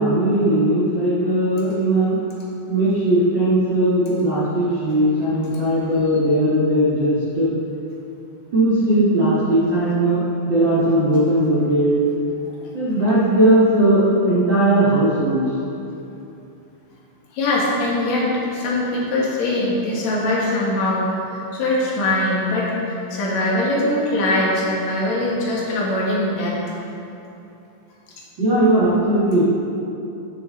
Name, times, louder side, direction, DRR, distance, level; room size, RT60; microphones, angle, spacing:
voice 1, 0.0-2.2 2.7-7.5 8.5-11.9 12.7-15.4 28.4-29.4, right 1 dB, 80° right, -10 dB, 1.0 m, -18 dB
voice 2, 17.3-26.8, left 1 dB, 60° left, -5 dB, 2.0 m, -22 dB
16.0 x 6.5 x 3.9 m, 2.8 s
omnidirectional pair, 5.7 m